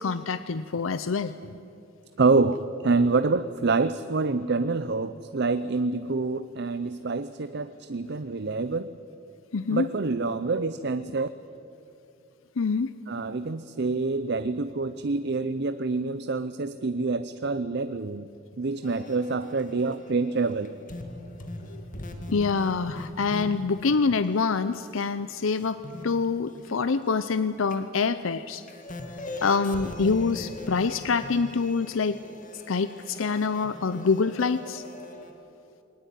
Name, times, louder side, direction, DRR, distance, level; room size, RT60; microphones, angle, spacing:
voice 1, 0.0-1.5 9.5-9.9 12.6-12.9 21.7-21.8 22.3-28.6 29.4-32.2 32.5-34.8, left 4 dB, 85° left, 13 dB, 0.6 m, -26 dB
voice 2, 2.2-8.9 9.7-11.3 13.1-18.3 18.6-20.7, right 3 dB, 55° right, 12 dB, 0.6 m, -26 dB
sound 1, 18.8-25.1 25.5-27.4 27.7-35.3, left 1 dB, 40° left, 2.1 m, -41 dB
21.5 x 19.0 x 9.2 m, 2.7 s
head